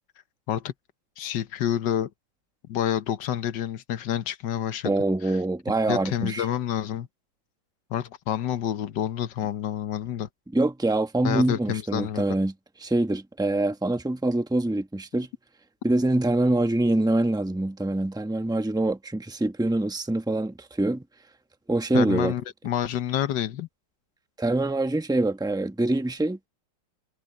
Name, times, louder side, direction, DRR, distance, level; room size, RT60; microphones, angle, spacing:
voice 1, 1.2-2.1 2.7-4.9 5.2-5.4 5.9-7.1 7.9-10.3 11.2-12.3 21.9-23.7, left 10 dB, 65° left, 1.6 m, -28 dB
voice 2, 4.8-6.4 10.5-12.5 12.8-15.3 15.8-21.0 21.7-22.3 24.4-26.4, right 2 dB, 5° right, 0.7 m, -25 dB
omnidirectional pair, 2.1 m